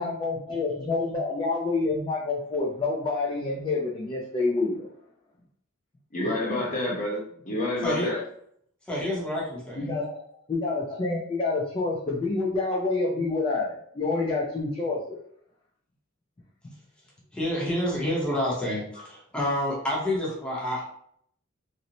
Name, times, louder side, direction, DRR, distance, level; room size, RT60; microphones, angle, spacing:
voice 1, 0.0-4.9 9.8-10.2 10.5-15.2, left 3 dB, 25° left, -4 dB, 0.4 m, -28 dB
voice 2, 6.1-8.2, left 1 dB, 40° left, -4 dB, 0.9 m, -28 dB
voice 3, 8.9-9.8 17.3-20.8, left 1 dB, 5° left, -6 dB, 0.7 m, -28 dB
2.6 x 2.1 x 2.8 m, 0.66 s
head